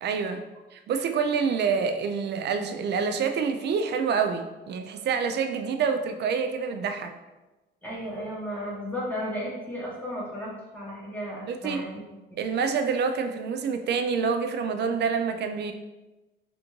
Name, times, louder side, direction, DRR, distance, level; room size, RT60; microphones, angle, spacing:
voice 1, 0.0-0.4 0.7-7.1 11.5-11.8 12.4-15.7, right 6 dB, 60° right, 7 dB, 0.4 m, -27 dB
voice 2, 7.8-12.0, equal, 10° left, -7 dB, 1.0 m, -34 dB
3.4 x 2.5 x 3.0 m, 1.1 s
cardioid pair, 90°, 20 cm